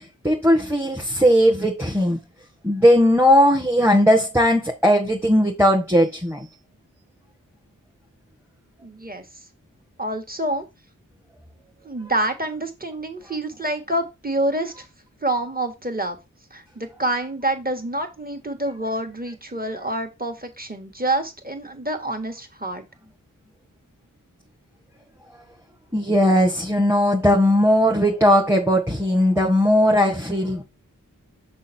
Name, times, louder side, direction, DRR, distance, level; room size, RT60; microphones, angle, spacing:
voice 1, 0.2-2.2 2.6-6.5 25.9-30.6, equal, 5° right, 1.5 m, -18 dB
voice 2, 8.8-9.2 10.0-10.7 11.8-14.9 15.2-16.2 16.5-22.8, right 1 dB, 25° right, 1.9 m, -27 dB
6.2 x 5.6 x 4.4 m
wide cardioid pair, 50°, 33 cm